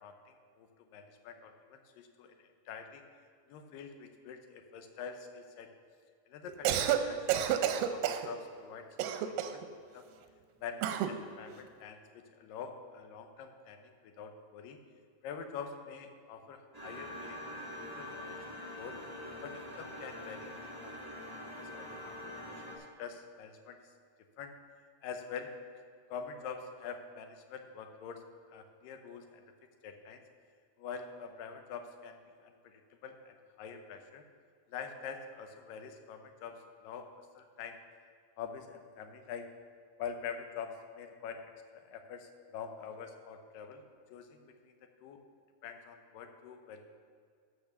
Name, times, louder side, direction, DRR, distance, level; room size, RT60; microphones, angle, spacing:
voice 1, 0.0-3.0 3.5-5.7 6.3-8.9 9.2-9.6 9.9-10.1 10.6-14.8 15.2-19.0 19.4-20.6 20.8-21.0 21.4-23.8 24.4-24.5 25.0-25.5 26.1-28.2 28.5-29.4 29.8-30.2 30.8-32.2 32.4-34.2 34.7-37.1 37.4-37.8 38.4-39.5 40.0-41.4 41.7-43.8 44.1-44.7 45.0-45.2 45.6-46.8, left 6 dB, 80° left, 6 dB, 2.4 m, -45 dB
Cough, 6.5-7.0 7.3-8.3 9.0-9.6 10.8-11.2, right 10 dB, 90° right, 2.4 m, -30 dB
sound 1, 16.7-22.8, left 1 dB, 10° right, 1.6 m, -44 dB
12.0 x 5.2 x 6.9 m, 2.1 s
omnidirectional pair, 4.0 m